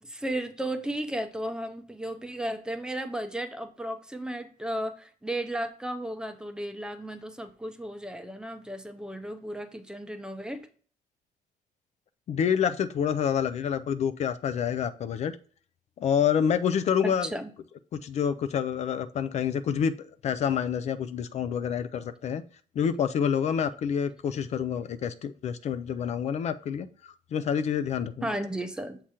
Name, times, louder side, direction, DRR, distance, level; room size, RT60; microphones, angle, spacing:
voice 1, 0.0-10.7 17.0-17.5 28.2-29.0, right 1 dB, 5° right, 7 dB, 0.5 m, -34 dB
voice 2, 12.3-15.3 16.0-17.3 17.9-22.4 22.8-28.3, left 8 dB, 50° left, 12 dB, 0.4 m, -28 dB
7.3 x 2.9 x 4.8 m, 0.44 s
cardioid pair, 155°, 15 cm